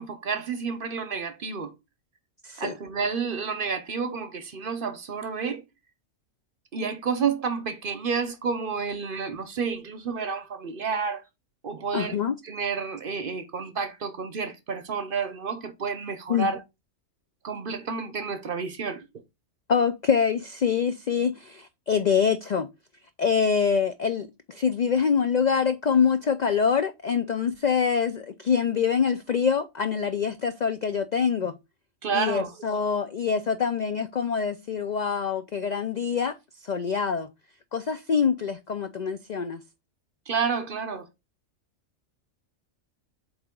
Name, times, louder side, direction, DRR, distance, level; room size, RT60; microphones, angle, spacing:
voice 1, 0.0-1.7 2.6-5.6 6.7-11.2 11.6-12.2 12.4-16.6 17.4-19.1 32.0-32.5 40.3-41.1, right 5 dB, 50° right, 0.8 m, -30 dB
voice 2, 11.9-12.3 16.3-16.5 19.7-22.7 23.2-31.5 32.1-36.3 36.6-37.3 37.7-39.6, left 6 dB, 75° left, 0.4 m, -25 dB
7.9 x 3.4 x 3.6 m
omnidirectional pair, 1.4 m